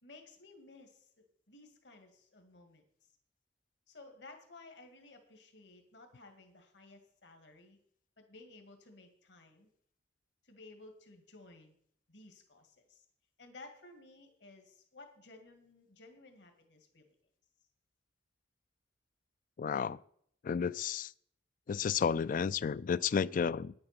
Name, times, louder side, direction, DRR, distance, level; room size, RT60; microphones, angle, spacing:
voice 1, 0.0-2.8 3.9-7.8 8.2-9.7 10.4-11.8 12.1-13.1 13.4-17.0, left 2 dB, 70° left, 1.9 m, -56 dB
voice 2, 19.6-20.0 20.4-21.1 21.7-23.7, left 6 dB, 50° left, 0.3 m, -32 dB
9.8 x 8.7 x 5.9 m
head